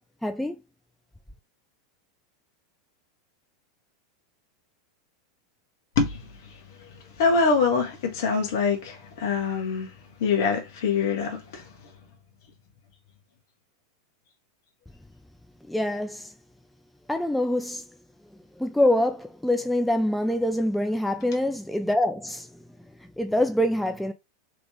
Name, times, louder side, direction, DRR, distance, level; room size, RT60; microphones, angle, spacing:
voice 1, 0.2-0.6 15.7-16.3 17.1-17.8 18.6-22.5 23.2-24.1, left 1 dB, ahead, 0.3 m, -25 dB
voice 2, 7.2-9.9 10.2-11.6, left 5 dB, 55° left, 1.4 m, -24 dB
3.5 x 2.9 x 3.5 m
figure-of-eight pair, 90°, 2 cm